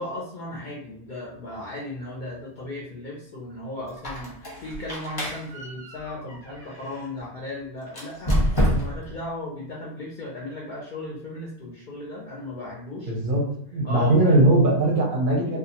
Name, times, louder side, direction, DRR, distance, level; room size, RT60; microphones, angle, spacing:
voice 1, 0.0-8.4 8.6-13.1 13.8-14.4, left 1 dB, 55° left, -4 dB, 0.5 m, -36 dB
Squeak, 3.9-7.1 7.9-9.2, equal, 20° left, 0.7 m, -27 dB
voice 2, 13.1-13.4 13.7-15.6, right 1 dB, 55° right, -2 dB, 0.7 m, -20 dB
2.3 x 2.2 x 2.8 m, 0.68 s
omnidirectional pair, 1.3 m